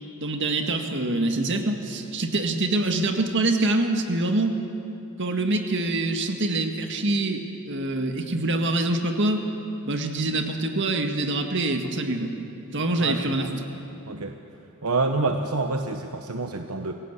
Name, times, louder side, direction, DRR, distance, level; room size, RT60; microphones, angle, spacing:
voice 1, 0.2-4.6 5.2-9.4 9.8-12.3 12.7-13.6, right 2 dB, 55° right, 5 dB, 1.9 m, -25 dB
voice 2, 13.0-13.5 14.0-14.4 14.8-16.9, right 3 dB, 75° right, 5 dB, 1.1 m, -27 dB
27.0 x 17.0 x 8.2 m, 2.8 s
head